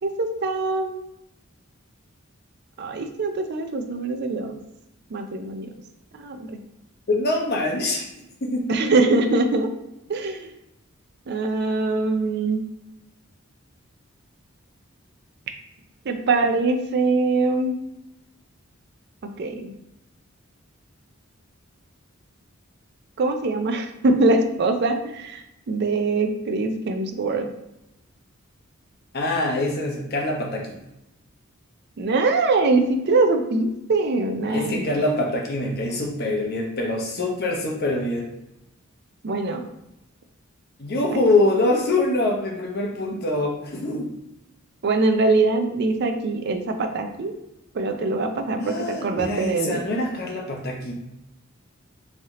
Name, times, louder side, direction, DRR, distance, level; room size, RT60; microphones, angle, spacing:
voice 1, 0.0-1.0 2.8-4.6 5.1-5.7 6.1-6.6 8.7-9.7 10.1-10.5 11.3-12.6 16.1-17.8 19.4-19.7 23.2-25.4 25.7-27.5 32.0-34.9 39.2-39.6 44.8-47.3 47.7-49.8, right 3 dB, 55° right, 6 dB, 0.4 m, -23 dB
voice 2, 7.1-8.1 8.4-8.7 29.1-30.8 34.5-38.3 40.8-44.1 48.6-50.9, left 2 dB, 50° left, -1 dB, 0.8 m, -24 dB
3.2 x 2.8 x 3.6 m, 0.89 s
head